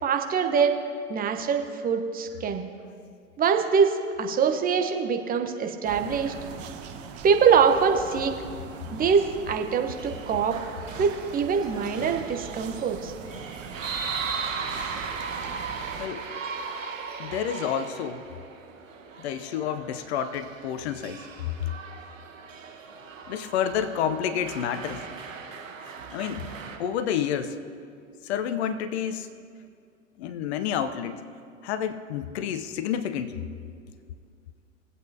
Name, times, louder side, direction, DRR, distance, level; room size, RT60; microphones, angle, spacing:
voice 1, 0.0-0.8 1.1-2.7 3.4-6.3 7.2-8.3 8.9-10.6 11.0-13.1, right 6 dB, 20° right, 5 dB, 1.0 m, -24 dB
sound 1, 5.8-16.1, right 6 dB, 40° right, 1.4 m, -42 dB
sound 2, 9.9-26.8, right 5 dB, 80° right, 1.4 m, -38 dB
voice 2, 16.0-16.3 17.2-18.3 19.2-21.3 21.6-21.7 23.3-25.0 26.1-26.4 26.8-27.6 28.2-29.3 30.2-31.2 31.6-33.5, left 8 dB, 55° left, 12 dB, 0.8 m, -29 dB
21.0 x 8.3 x 2.8 m, 2.3 s
figure-of-eight pair, 90°, 39 cm